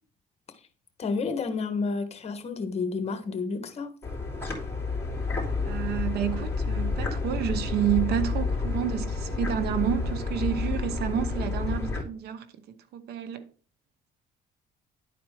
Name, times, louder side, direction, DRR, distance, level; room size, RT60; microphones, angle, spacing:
voice 1, 1.0-3.9, left 4 dB, 40° left, 1.4 m, -30 dB
sound 1, 4.0-12.0, left 4 dB, 15° left, 2.8 m, -30 dB
voice 2, 5.6-12.5 12.9-13.5, right 10 dB, 70° right, 0.8 m, -30 dB
11.0 x 4.2 x 4.7 m
cardioid pair, 110°, 17 cm